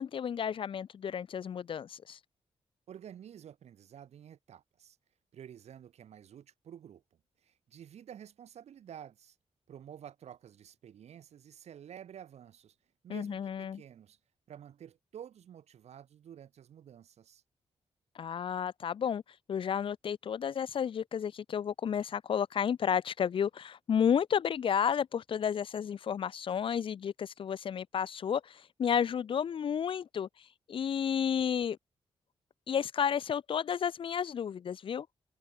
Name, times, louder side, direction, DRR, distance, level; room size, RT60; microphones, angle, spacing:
voice 1, 0.0-2.2 13.1-13.8 18.1-19.2 19.5-30.3 30.7-31.8 32.7-35.1, left 8 dB, 55° left, 0.7 m, -32 dB
voice 2, 2.9-5.0 5.3-7.0 7.4-9.4 9.7-12.8 13.0-14.2 14.5-17.4, right 9 dB, 85° right, 4.7 m, -50 dB
wide cardioid pair, 150°, 11 cm